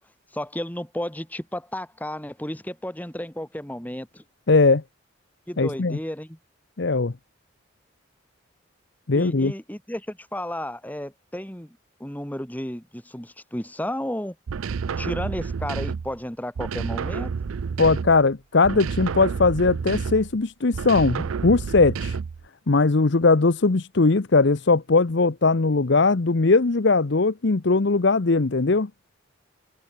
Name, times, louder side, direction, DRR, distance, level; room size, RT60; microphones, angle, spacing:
voice 1, 0.3-4.2 5.5-6.4 9.1-14.4 15.0-17.3, left 1 dB, 10° left, 2.3 m, -33 dB
voice 2, 4.5-4.8 5.6-6.0 6.8-7.1 9.1-9.5 17.8-22.2 22.7-28.9, left 3 dB, 55° left, 0.8 m, -20 dB
sound 1, 14.5-16.2 16.5-18.3 18.6-20.4 20.7-22.4, right 5 dB, 90° right, 0.5 m, -30 dB
head